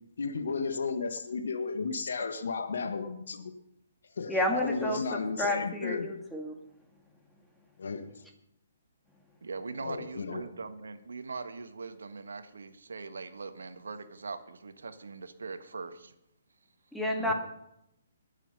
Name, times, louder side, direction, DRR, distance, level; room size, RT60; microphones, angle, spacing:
voice 1, 0.2-3.5 4.2-6.1 7.8-8.1 9.8-10.4 17.3-17.4, left 4 dB, 70° left, 7 dB, 1.6 m, -34 dB
voice 2, 4.3-6.5 16.9-17.3, left 1 dB, ahead, 1 dB, 2.1 m, -31 dB
voice 3, 9.4-16.1 17.2-17.3, right 4 dB, 75° right, 9 dB, 1.4 m, -41 dB
21.0 x 7.4 x 5.5 m, 0.80 s
hypercardioid pair, 140°, 0 cm